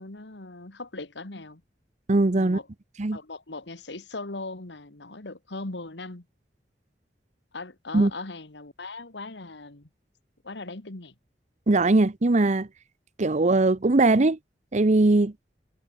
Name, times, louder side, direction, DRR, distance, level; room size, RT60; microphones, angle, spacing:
voice 1, 0.0-1.6 2.4-2.7 3.1-6.3 7.5-9.9 10.4-11.1, left 2 dB, 75° left, 2.0 m, -39 dB
voice 2, 2.1-2.6 3.0-3.2 7.9-8.1 11.7-12.7 13.2-14.4 14.7-15.3, right 2 dB, 40° right, 0.8 m, -20 dB
head